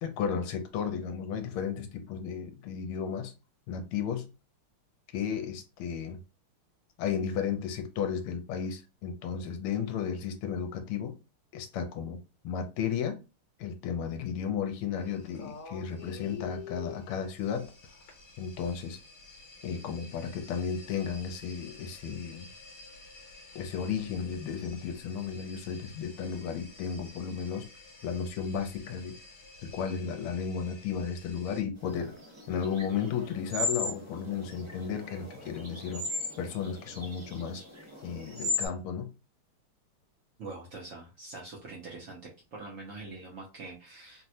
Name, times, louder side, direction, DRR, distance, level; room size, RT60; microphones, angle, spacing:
voice 1, 0.0-3.3 3.7-4.3 5.1-6.2 7.0-11.2 11.5-13.2 13.6-17.7 18.4-19.0 19.6-22.5 23.5-27.7 28.0-29.2 29.6-32.1 32.5-36.0 36.4-37.6 38.0-39.1, left 7 dB, 80° left, 1.5 m, -34 dB
sound 1, 14.9-31.6, left 4 dB, 55° left, 1.3 m, -50 dB
sound 2, 31.9-38.7, left 2 dB, 30° right, 0.5 m, -37 dB
voice 2, 40.4-42.2 42.5-44.2, right 3 dB, 80° right, 0.7 m, -44 dB
3.7 x 2.1 x 2.7 m
omnidirectional pair, 2.4 m